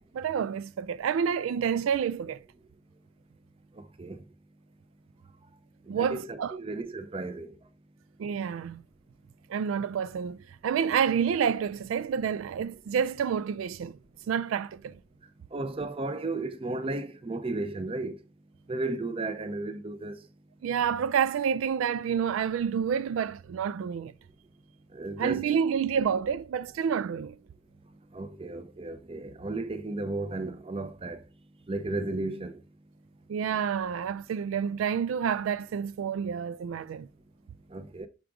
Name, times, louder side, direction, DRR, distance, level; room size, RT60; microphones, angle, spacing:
voice 1, 0.1-2.4 5.9-6.6 8.2-8.8 9.5-10.4 10.6-14.0 14.3-15.0 20.6-24.1 25.2-27.4 33.3-37.1, right 7 dB, 90° right, 0.3 m, -28 dB
voice 2, 3.8-4.2 5.9-7.6 15.5-18.2 18.7-20.2 24.9-25.5 28.1-31.2 31.7-32.6 37.7-38.1, right 2 dB, 30° right, 0.6 m, -34 dB
5.9 x 5.0 x 3.6 m
head